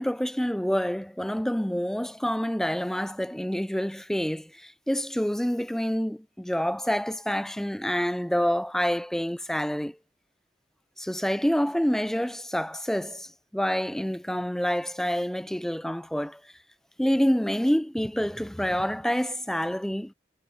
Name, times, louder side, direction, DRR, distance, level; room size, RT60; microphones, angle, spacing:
voice 1, 0.0-10.0 11.0-16.5 17.0-20.1, equal, ahead, 0.3 m, -27 dB
head